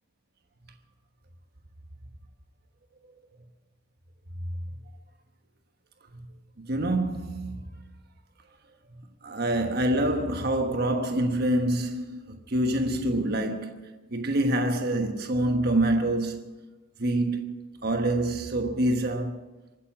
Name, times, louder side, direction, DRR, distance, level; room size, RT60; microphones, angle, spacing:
voice 1, 6.6-7.8 9.2-16.5 17.0-19.4, right 1 dB, 50° right, 1.3 m, -26 dB
24.0 x 9.8 x 6.1 m
head